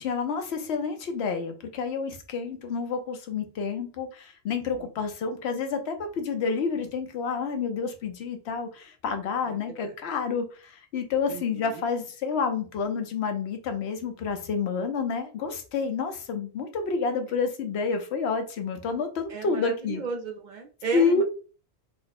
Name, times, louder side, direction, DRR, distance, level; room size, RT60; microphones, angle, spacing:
voice 1, 0.0-20.0 20.9-21.2, left 5 dB, 75° left, 0.9 m, -29 dB
voice 2, 11.3-11.8 19.3-21.2, right 5 dB, 55° right, 0.5 m, -34 dB
2.9 x 2.0 x 4.0 m
omnidirectional pair, 1.1 m